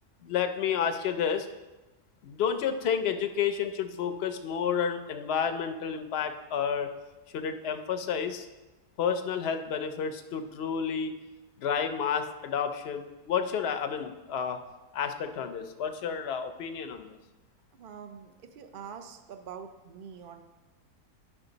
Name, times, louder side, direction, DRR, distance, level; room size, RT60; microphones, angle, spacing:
voice 1, 0.2-1.5 2.2-6.9 7.3-8.5 9.0-11.1 11.6-14.6 14.9-17.2, left 7 dB, 60° left, 7 dB, 0.7 m, -30 dB
voice 2, 17.8-20.4, right 7 dB, 65° right, 7 dB, 0.5 m, -45 dB
10.0 x 5.9 x 3.9 m, 1.1 s
omnidirectional pair, 1.7 m